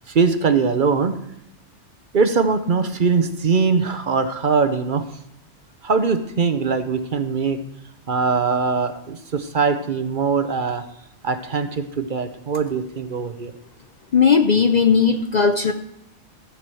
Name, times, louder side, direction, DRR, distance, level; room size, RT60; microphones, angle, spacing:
voice 1, 0.1-1.2 2.1-5.1 5.8-7.6 8.1-10.8 11.2-13.5, right 5 dB, 50° right, 10 dB, 0.9 m, -21 dB
voice 2, 14.1-15.7, left 6 dB, 50° left, 8 dB, 0.6 m, -17 dB
14.0 x 4.8 x 7.6 m, 0.84 s
omnidirectional pair, 1.2 m